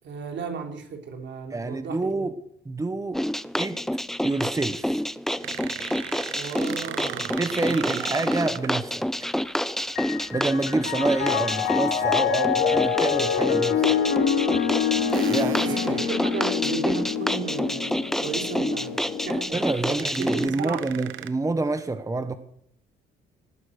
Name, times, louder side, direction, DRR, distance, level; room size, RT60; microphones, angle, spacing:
voice 1, 0.0-2.3 6.3-7.4 7.6-8.0 15.3-20.8, right 5 dB, 65° right, 3.5 m, -35 dB
voice 2, 1.5-2.3 2.6-3.2 3.6-3.8 4.2-5.0 7.4-9.3 10.3-13.9 15.3-16.0 19.5-22.4, right 3 dB, 15° right, 1.1 m, -28 dB
sound 1, 3.1-20.5, equal, ahead, 0.5 m, -28 dB
sound 2, 5.4-8.7 10.8-11.1 12.7-12.9 13.8-13.9 15.1-16.9 17.4-17.6 17.9-18.0 19.5-19.6 19.9-21.3, right 12 dB, 80° right, 1.0 m, -37 dB
Piano, 9.8-19.4, left 8 dB, 65° left, 2.5 m, -26 dB
18.5 x 9.5 x 6.4 m
cardioid pair, 90°, 20 cm